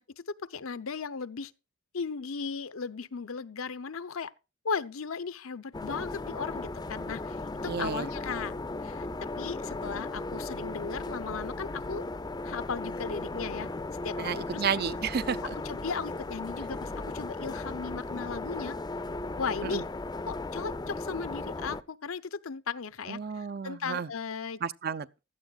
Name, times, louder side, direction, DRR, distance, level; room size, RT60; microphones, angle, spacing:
voice 1, 0.0-1.5 1.9-4.3 4.6-7.4 7.6-8.5 8.8-12.0 12.4-13.7 14.0-14.6 15.6-18.8 19.4-19.9 20.3-24.6, left 5 dB, 85° left, 0.7 m, -36 dB
sound 1, 5.7-21.8, left 2 dB, 20° left, 0.5 m, -36 dB
voice 2, 7.7-8.1 14.2-15.4 19.7-19.8 23.1-24.1 24.6-25.2, right 6 dB, 50° right, 0.6 m, -32 dB
16.0 x 12.5 x 2.4 m
head